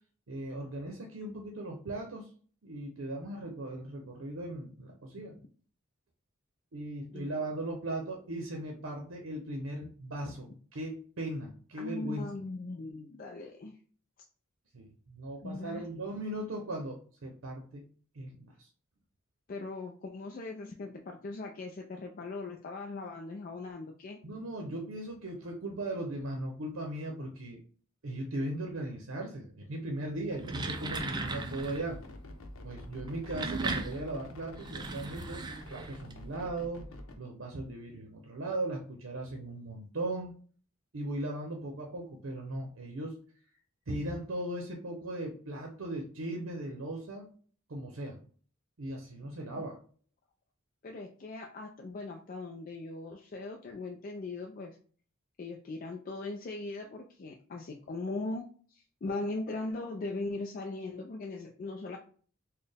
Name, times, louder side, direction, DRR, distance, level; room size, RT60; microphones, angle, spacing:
voice 1, 0.3-2.3 2.6-5.3 6.7-12.3 14.7-17.8 18.1-18.7 24.2-27.6 28.0-32.0 32.6-36.9 37.2-40.3 40.9-43.2 43.9-47.3 47.7-48.2 48.8-49.8, right 1 dB, 75° right, 1 dB, 0.7 m, -38 dB
voice 2, 11.8-13.8 15.4-15.9 19.5-24.2 49.5-49.7 50.8-54.8 55.4-58.4 58.7-62.0, left 2 dB, 45° left, 2 dB, 0.4 m, -39 dB
sound 1, 30.2-31.9 33.0-36.1, right 3 dB, 20° right, 0.4 m, -37 dB
sound 2, 31.0-37.2, left 1 dB, 90° left, 0.7 m, -47 dB
4.2 x 2.1 x 3.3 m, 0.44 s
head